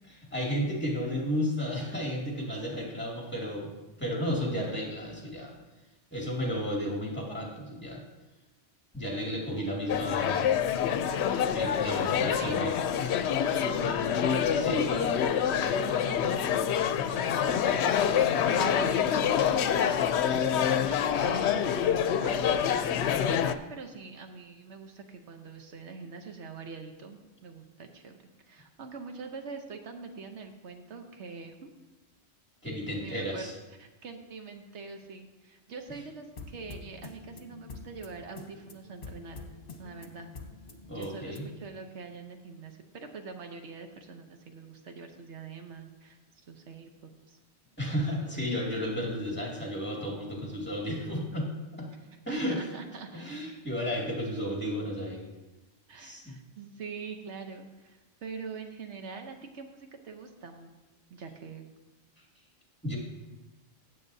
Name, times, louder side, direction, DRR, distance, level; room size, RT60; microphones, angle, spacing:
voice 1, 0.3-3.7 4.0-5.5 6.1-8.0 8.9-10.6 11.5-12.8 14.5-14.9 32.6-33.5 40.9-41.5 47.8-51.9 52.3-52.6 53.1-55.3 56.0-56.3 62.8-63.0, equal, 10° left, -3 dB, 2.2 m, -33 dB
sound 1, 9.9-23.5, left 8 dB, 75° left, 0.8 m, -26 dB
voice 2, 12.1-18.0 18.4-19.9 20.5-21.5 21.8-28.1 28.5-31.7 33.0-33.5 33.8-39.4 39.8-40.3 40.9-47.4 48.3-48.4 52.1-53.5 55.9-60.7 61.1-61.7, right 5 dB, 80° right, 5 dB, 1.1 m, -44 dB
sound 2, 36.4-41.7, left 3 dB, 50° left, 1.2 m, -46 dB
16.0 x 7.7 x 2.7 m, 1.1 s
omnidirectional pair, 1.2 m